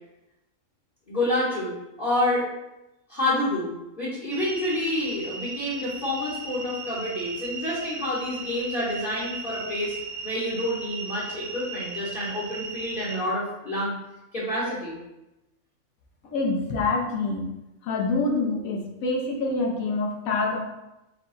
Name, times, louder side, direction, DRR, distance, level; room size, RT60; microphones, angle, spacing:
voice 1, 1.1-1.7 2.0-2.5 3.1-10.0 10.2-13.9 14.3-15.0, left 1 dB, 40° left, -9 dB, 1.1 m, -28 dB
sound 1, 4.3-13.2, right 4 dB, 60° right, 0.7 m, -37 dB
voice 2, 16.3-17.5 17.8-20.6, left 3 dB, 75° left, 0 dB, 1.2 m, -26 dB
4.7 x 2.1 x 4.0 m, 0.94 s
omnidirectional pair, 1.5 m